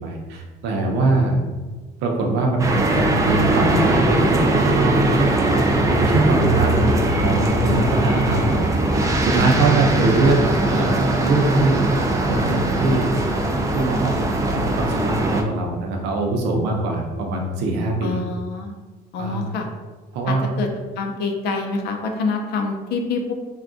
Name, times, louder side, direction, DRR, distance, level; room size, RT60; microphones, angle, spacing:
voice 1, 0.0-1.4 2.0-5.1 5.5-10.4 10.7-11.8 12.1-13.1 13.7-18.2 19.2-19.4 20.1-20.5, right 2 dB, 90° right, 1 dB, 0.6 m, -23 dB
sound 1, 2.6-15.4, right 2 dB, 20° right, 0.4 m, -20 dB
voice 2, 18.0-18.7 19.1-19.7 20.3-20.7 21.0-23.3, left 3 dB, 75° left, 3 dB, 0.5 m, -26 dB
3.4 x 2.2 x 2.5 m, 1.3 s
cardioid pair, 110°, 17 cm